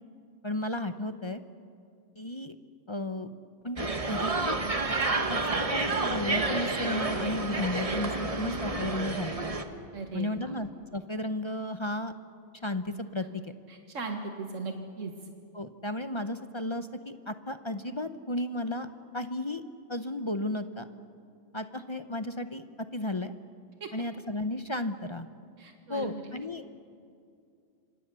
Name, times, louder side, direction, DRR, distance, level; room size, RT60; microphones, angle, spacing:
voice 1, 0.4-1.4 2.2-2.6 2.9-3.3 3.6-4.6 5.3-5.4 5.7-9.5 10.1-12.1 12.6-13.5 15.5-18.9 19.1-19.6 19.9-20.9 21.5-23.3 23.9-25.3 25.9-26.6, left 1 dB, 25° left, 9 dB, 0.8 m, -34 dB
sound 1, 3.8-9.6, right 3 dB, 30° right, 1.4 m, -30 dB
voice 2, 9.9-10.6 13.7-15.1 23.8-23.9 25.6-26.3, right 4 dB, 90° right, 4 dB, 1.9 m, -38 dB
26.5 x 26.0 x 6.9 m, 2.4 s
omnidirectional pair, 1.3 m